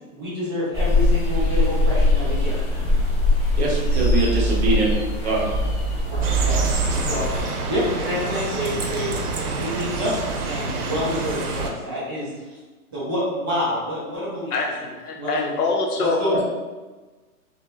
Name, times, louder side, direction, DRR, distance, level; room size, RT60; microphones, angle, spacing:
voice 1, 0.1-2.6 4.6-4.8 6.1-12.6 12.9-14.5 15.1-15.5 16.0-16.4, left 1 dB, 15° right, -11 dB, 0.4 m, -28 dB
sound 1, 0.7-7.4, left 1 dB, 25° left, 0.7 m, -21 dB
voice 2, 3.6-4.9 5.2-5.5 16.3-16.4, right 2 dB, 45° right, -3 dB, 0.8 m, -23 dB
sound 2, 6.2-11.7, right 3 dB, 85° right, 0.6 m, -28 dB
voice 3, 14.5-16.2, left 3 dB, 90° left, 1 dB, 0.7 m, -24 dB
2.9 x 2.1 x 2.2 m, 1.3 s
hypercardioid pair, 145°, 44 cm